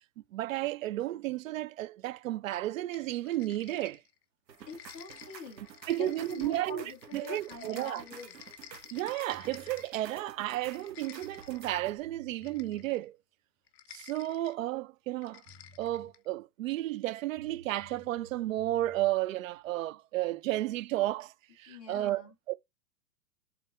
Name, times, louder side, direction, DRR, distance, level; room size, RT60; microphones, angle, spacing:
voice 1, 0.3-4.0 5.9-6.8 7.1-8.0 8.9-13.2 13.9-15.4 15.8-22.2 22.5-22.6, right 15 dB, 55° right, 0.5 m, -33 dB
sound 1, 2.9-4.2 4.5-10.1 10.5-11.8 12.4-13.0 13.7-14.6 15.2-16.3, left 11 dB, 40° left, 0.8 m, -53 dB
sound 2, 4.5-12.0, right 7 dB, 80° right, 1.4 m, -51 dB
voice 2, 4.7-5.6 6.0-8.3 21.7-22.3, left 4 dB, 5° left, 0.3 m, -44 dB
sound 3, 9.3-9.8 10.8-10.9 11.2-12.9 15.1-15.2 15.4-16.1 17.3-19.1, equal, 35° right, 2.4 m, -56 dB
5.5 x 4.0 x 4.5 m
hypercardioid pair, 125°, 50 cm